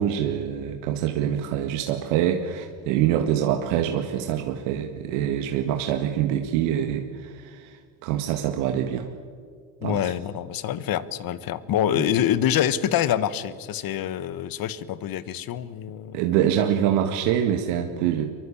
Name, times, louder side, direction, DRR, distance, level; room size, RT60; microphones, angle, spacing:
voice 1, 0.0-9.1 9.8-10.0 12.0-12.1 16.1-18.3, right 10 dB, 75° right, 5 dB, 2.0 m, -25 dB
voice 2, 9.8-16.2, left 10 dB, 45° left, 15 dB, 1.4 m, -26 dB
24.0 x 23.0 x 8.6 m, 2.1 s
supercardioid pair, 120°, 50 cm